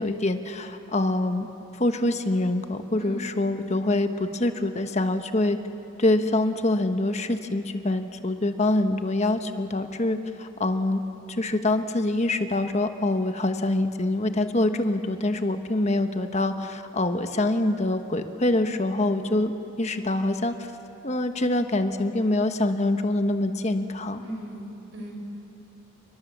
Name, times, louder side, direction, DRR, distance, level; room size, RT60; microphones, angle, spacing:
voice 1, 0.0-1.5 1.8-5.6 6.0-11.0 11.3-19.5 19.8-20.5 21.0-24.2, left 2 dB, 35° left, 8 dB, 1.2 m, -25 dB
voice 2, 24.2-25.1, right 1 dB, 70° right, 0 dB, 6.3 m, -38 dB
29.0 x 22.5 x 7.4 m, 2.8 s
head